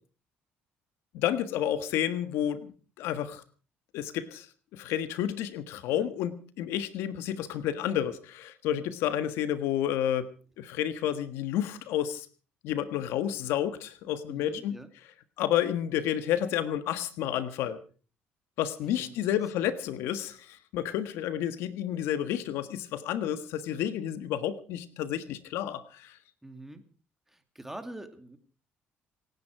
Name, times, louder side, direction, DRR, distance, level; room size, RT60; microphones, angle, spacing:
voice 1, 1.1-3.4 3.9-4.5 4.7-10.3 10.6-12.3 12.6-14.8 15.4-17.8 18.6-26.2, left 11 dB, 85° left, 11 dB, 1.5 m, -30 dB
voice 2, 14.3-14.9 18.9-19.2 26.4-26.8 27.3-28.4, right 1 dB, 5° right, 8 dB, 2.5 m, -44 dB
27.0 x 9.7 x 4.7 m, 0.38 s
cardioid pair, 100°, 4 cm